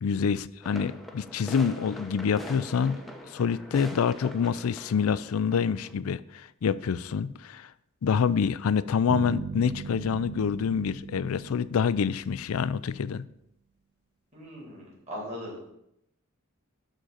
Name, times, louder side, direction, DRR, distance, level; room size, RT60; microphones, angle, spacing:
voice 1, 0.0-3.0 3.3-7.7 8.0-13.2, left 6 dB, 75° left, 0.4 m, -27 dB
sound 1, 0.6-5.9, left 1 dB, ahead, 0.8 m, -43 dB
sound 2, 9.1-12.8, right 5 dB, 75° right, 0.5 m, -39 dB
voice 2, 14.3-15.7, equal, 35° right, 3.9 m, -39 dB
11.0 x 3.9 x 7.0 m
head